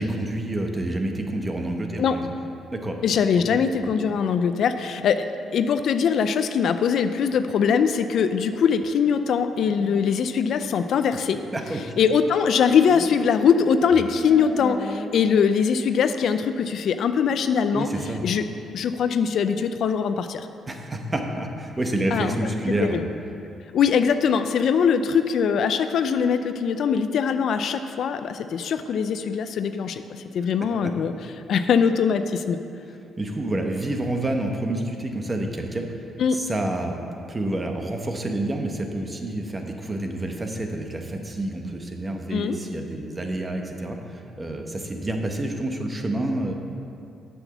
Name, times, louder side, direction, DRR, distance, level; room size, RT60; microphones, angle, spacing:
voice 1, 0.0-2.3 2.7-2.9 3.4-3.9 11.5-11.8 17.7-18.3 20.7-23.0 33.2-35.9 36.3-37.0 37.3-46.5, right 1 dB, 25° right, 3 dB, 1.1 m, -28 dB
voice 2, 3.0-5.3 5.5-11.4 12.0-17.9 18.2-18.4 18.7-20.5 22.1-22.3 22.8-23.0 23.7-31.1 31.5-32.6 36.2-36.4 42.3-42.6, left 6 dB, 65° left, 9 dB, 0.4 m, -22 dB
sound 1, 7.0-7.8 8.5-8.9 9.5-10.1 11.3-11.4 12.6-13.2 13.5-13.6 14.0-15.1, equal, 5° right, 0.8 m, -39 dB
7.8 x 6.2 x 7.0 m, 2.6 s
cardioid pair, 90°, 0 cm